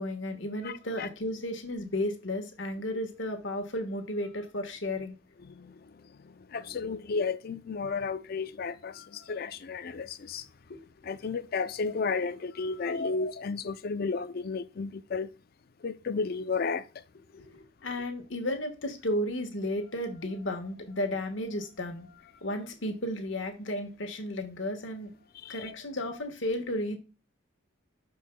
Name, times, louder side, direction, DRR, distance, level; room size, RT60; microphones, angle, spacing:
voice 1, 0.0-5.1 8.9-9.4 10.7-10.9 12.6-13.1 17.3-25.1 25.4-27.0, left 1 dB, 65° left, 1.4 m, -34 dB
voice 2, 0.6-1.1 5.4-5.8 6.5-10.5 11.0-15.3 15.8-16.9 25.4-25.7, left 4 dB, 50° left, 0.4 m, -33 dB
12.5 x 4.7 x 2.2 m
head